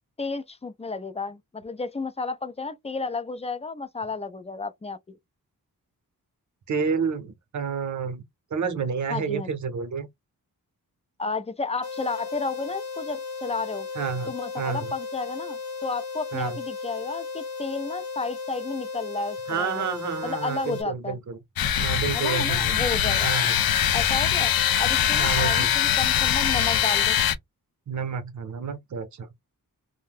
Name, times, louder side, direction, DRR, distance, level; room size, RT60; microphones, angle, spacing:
voice 1, 0.2-5.0 9.1-9.5 11.2-13.9 14.3-19.8 20.2-21.1 22.1-23.3 23.9-24.5 24.8-27.2, left 4 dB, 20° left, 0.3 m, -32 dB
voice 2, 6.7-8.2 8.5-10.1 13.9-14.3 14.6-14.9 16.3-16.6 19.5-21.4 21.8-22.7 23.2-23.6 25.1-25.7 27.9-29.3, right 6 dB, 55° right, 0.8 m, -29 dB
sound 1, 11.8-20.8, left 4 dB, 55° left, 0.8 m, -35 dB
sound 2, 21.6-27.3, left 10 dB, 80° left, 0.5 m, -22 dB
2.6 x 2.1 x 3.5 m
wide cardioid pair, 140°, 36 cm